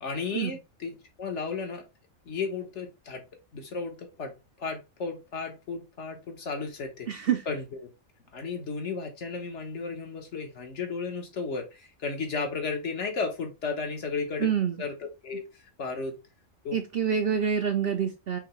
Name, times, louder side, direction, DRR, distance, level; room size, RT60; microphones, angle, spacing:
voice 1, 0.0-1.8 2.3-3.2 3.5-7.1 7.5-7.6 8.3-14.5 14.8-14.9 15.2-15.4 15.8-16.2 16.6-16.8, left 4 dB, 60° left, 4 dB, 1.3 m, -34 dB
voice 2, 7.1-7.4 14.4-14.8 16.7-18.4, right 8 dB, 55° right, 5 dB, 0.7 m, -27 dB
5.7 x 2.8 x 3.1 m, 0.26 s
omnidirectional pair, 1.4 m